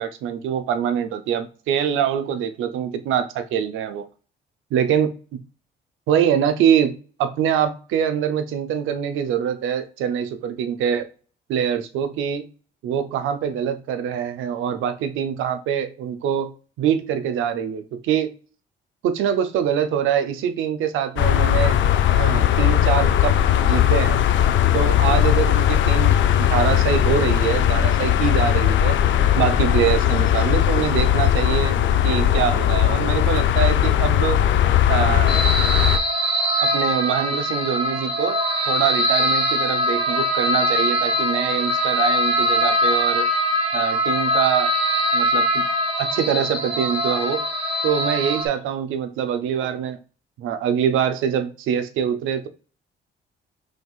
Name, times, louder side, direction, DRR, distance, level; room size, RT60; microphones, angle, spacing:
voice 1, 0.0-4.1 4.7-5.1 6.1-11.1 11.5-12.5 12.8-18.3 19.0-21.8 22.2-23.4 23.6-24.2 24.7-29.0 29.4-31.8 32.0-34.4 34.9-35.4 36.6-38.4 38.7-43.3 43.7-44.7 45.1-45.6 46.0-47.4 47.8-50.0 50.4-52.5, right 8 dB, 85° right, 9 dB, 0.6 m, -24 dB
sound 1, 21.2-36.0, left 11 dB, 70° left, 0.5 m, -18 dB
sound 2, 35.3-48.5, equal, 30° right, 1.2 m, -22 dB
5.3 x 3.3 x 2.4 m, 0.38 s
cardioid pair, 90°, 20 cm